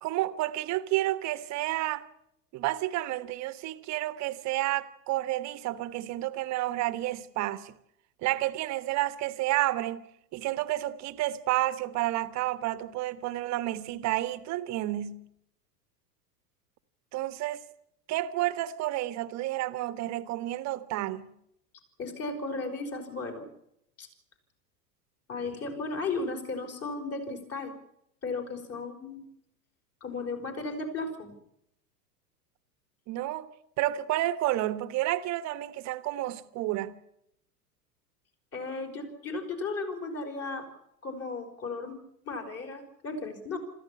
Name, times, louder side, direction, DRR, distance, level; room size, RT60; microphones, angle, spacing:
voice 1, 0.0-2.0 2.5-7.7 8.2-10.0 10.3-15.2 17.1-17.6 18.1-21.3 33.1-33.5 33.8-36.9, right 15 dB, 35° right, 1.3 m, -30 dB
voice 2, 22.0-23.5 24.0-24.1 25.3-27.7 28.2-29.3 30.0-31.4 38.5-40.7 41.0-42.0 42.3-43.6, left 3 dB, 30° left, 5.1 m, -35 dB
26.5 x 14.5 x 8.8 m
figure-of-eight pair, 90°, 48 cm